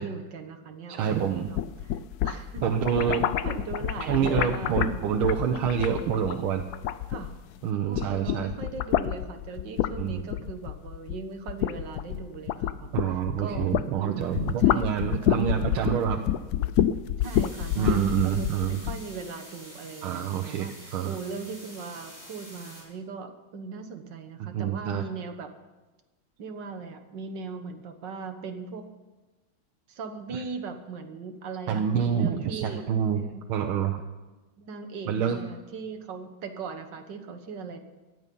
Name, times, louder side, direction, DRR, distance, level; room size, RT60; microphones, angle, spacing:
voice 1, 0.0-2.6 3.4-5.0 7.1-7.3 7.8-12.9 13.4-16.0 17.2-25.5 26.4-28.9 29.9-32.8 33.3-33.5 34.6-37.8, right 5 dB, 60° right, 6 dB, 1.9 m, -39 dB
voice 2, 0.9-1.5 2.6-3.3 4.1-6.6 7.6-8.5 10.0-10.2 12.9-16.2 17.8-18.8 20.0-21.2 24.4-25.0 30.3-30.4 31.7-33.2 33.5-34.0 35.1-35.4, right 8 dB, 80° right, 4 dB, 1.7 m, -27 dB
sound 1, 1.3-7.6 7.9-13.9 14.2-19.0, left 11 dB, 75° left, 0.9 m, -28 dB
sound 2, 17.2-22.8, equal, 20° right, 6.9 m, -47 dB
18.5 x 12.5 x 5.4 m, 1.2 s
omnidirectional pair, 2.3 m